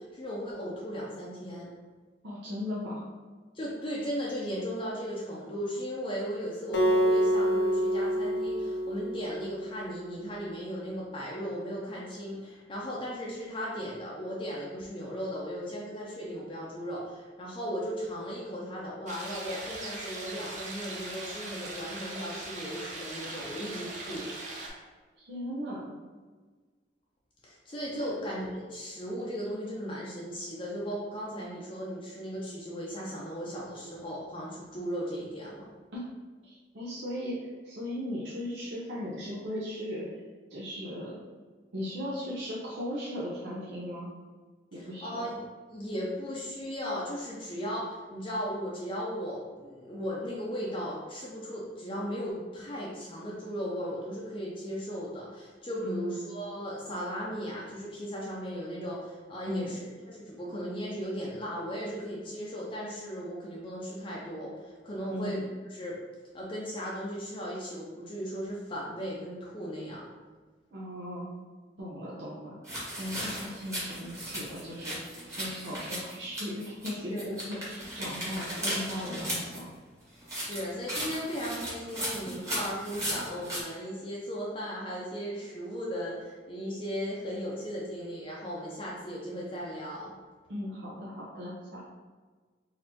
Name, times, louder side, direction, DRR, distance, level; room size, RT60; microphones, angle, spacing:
voice 1, 0.0-1.7 3.5-24.3 27.4-35.7 44.7-59.8 60.1-65.4 65.7-66.0 66.3-70.0 77.1-77.2 78.2-78.3 80.4-90.1, equal, 30° left, -5 dB, 0.5 m, -36 dB
voice 2, 2.2-3.1 25.2-25.9 27.9-28.1 35.9-36.0 36.4-40.1 40.5-41.2 41.7-44.1 44.7-45.3 55.8-56.2 59.5-59.8 65.1-65.4 70.7-71.3 71.8-75.0 75.3-79.6 90.5-91.8, left 1 dB, 85° right, -7 dB, 0.7 m, -37 dB
Acoustic guitar, 6.7-10.0, equal, 75° left, 0.5 m, -27 dB
sound 1, 19.1-24.7, right 2 dB, 45° right, 0.6 m, -40 dB
sound 2, 72.6-76.9 77.2-79.6 80.2-83.6, equal, 20° right, 1.1 m, -36 dB
4.1 x 2.7 x 2.8 m, 1.4 s
head